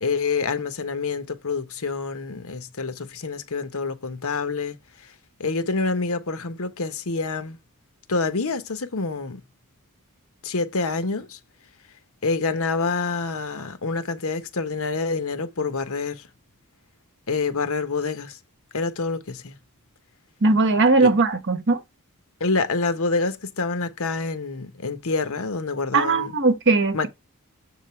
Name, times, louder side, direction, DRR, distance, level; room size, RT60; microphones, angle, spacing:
voice 1, 0.0-4.8 5.0-5.1 5.4-7.6 8.1-9.4 10.4-11.4 12.2-16.3 17.3-18.4 18.7-19.6 21.0-21.1 22.4-26.3 26.9-27.1, left 4 dB, 65° left, 1.1 m, -27 dB
voice 2, 20.4-21.8 25.9-27.1, right 3 dB, 55° right, 1.1 m, -19 dB
7.5 x 3.7 x 4.6 m
head